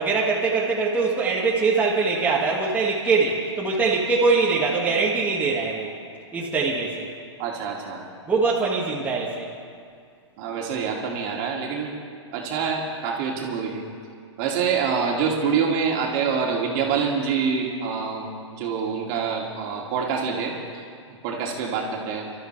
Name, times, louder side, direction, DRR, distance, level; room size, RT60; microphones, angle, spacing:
voice 1, 0.0-5.9 6.3-7.1 8.3-9.5 15.1-15.2, right 4 dB, 10° right, -5 dB, 2.0 m, -22 dB
voice 2, 7.4-8.1 10.4-11.9 12.3-13.9 14.4-20.8 21.2-22.2, right 6 dB, 40° right, -1 dB, 2.6 m, -26 dB
25.5 x 13.0 x 3.4 m, 2.2 s
hypercardioid pair, 120°, 15 cm